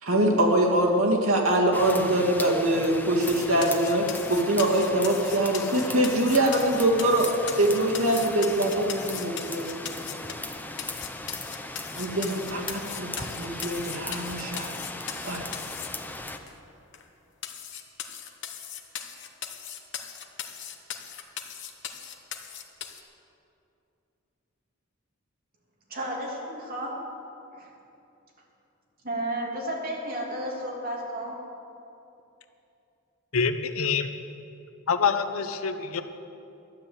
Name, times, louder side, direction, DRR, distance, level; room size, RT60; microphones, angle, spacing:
voice 1, 0.0-7.3 7.6-10.3 11.9-14.7 15.2-15.4, right 1 dB, 80° right, -1 dB, 2.1 m, -24 dB
sound 1, 1.7-16.4, left 2 dB, 10° left, 0.6 m, -37 dB
sound 2, 3.2-10.5 10.8-15.9 16.5-16.6 16.9-17.0 17.4-23.0, left 9 dB, 60° left, 1.1 m, -38 dB
voice 2, 25.9-26.9 27.6-27.7 29.0-31.3, right 1 dB, 45° right, -2 dB, 2.7 m, -32 dB
voice 3, 33.3-34.1 34.9-36.0, left 5 dB, 80° left, 9 dB, 0.8 m, -26 dB
12.0 x 9.9 x 7.8 m, 2.7 s
head